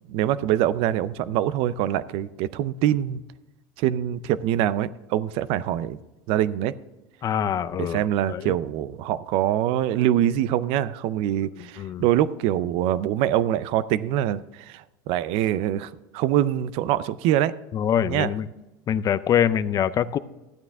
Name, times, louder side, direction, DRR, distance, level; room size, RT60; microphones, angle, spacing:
voice 1, 0.1-3.2 3.8-6.0 6.3-6.7 7.8-17.5 18.1-18.3, right 12 dB, 65° right, 17 dB, 0.5 m, -24 dB
voice 2, 7.2-8.0 8.3-8.6 11.6-12.0 17.7-18.5 18.9-20.2, left 9 dB, 35° left, 16 dB, 0.5 m, -24 dB
13.0 x 9.0 x 3.6 m, 1.0 s
supercardioid pair, 115°, 11 cm